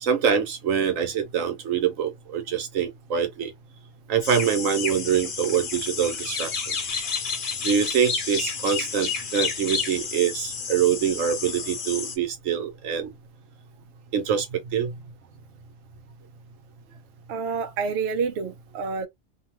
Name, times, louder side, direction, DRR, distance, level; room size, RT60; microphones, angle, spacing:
voice 1, 0.0-3.5 4.1-6.6 7.6-13.1 14.1-14.9, right 8 dB, 85° right, 1.2 m, -25 dB
sound 1, 4.2-12.2, left 5 dB, 50° left, 0.8 m, -30 dB
voice 2, 17.3-19.1, right 5 dB, 65° right, 0.8 m, -28 dB
2.8 x 2.2 x 2.9 m
omnidirectional pair, 1.3 m